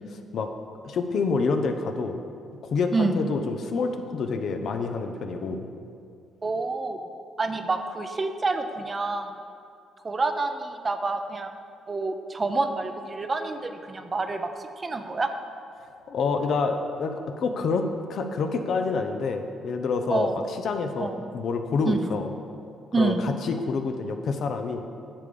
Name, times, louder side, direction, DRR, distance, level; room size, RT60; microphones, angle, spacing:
voice 1, 0.8-2.2 2.6-5.7 16.1-22.3 23.0-24.8, left 4 dB, 65° left, 6 dB, 0.7 m, -27 dB
voice 2, 6.4-7.0 7.4-9.3 10.0-11.5 11.9-15.3 20.1-20.4 21.0-21.2 21.8-22.0 22.9-23.2, right 3 dB, 35° right, 7 dB, 0.7 m, -27 dB
9.9 x 3.6 x 6.9 m, 2.5 s
supercardioid pair, 60°, 0 cm